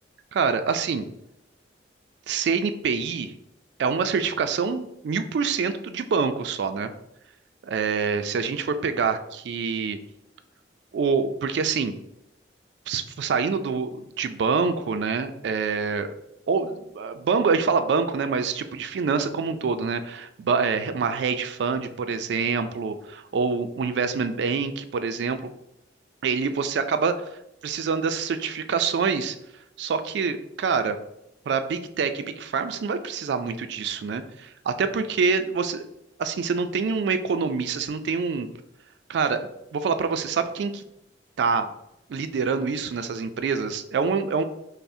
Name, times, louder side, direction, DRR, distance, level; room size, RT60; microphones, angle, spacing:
voice 1, 0.3-1.0 2.3-3.3 3.8-6.9 7.6-9.2 9.5-10.0 10.9-11.9 12.9-16.1 16.5-25.5 26.2-27.3 27.6-29.4 29.8-31.0 31.5-35.8 36.2-38.5 39.1-40.8 41.4-41.7 42.1-44.4, right 5 dB, 65° right, 9 dB, 0.3 m, -26 dB
5.4 x 2.1 x 2.6 m, 0.82 s
head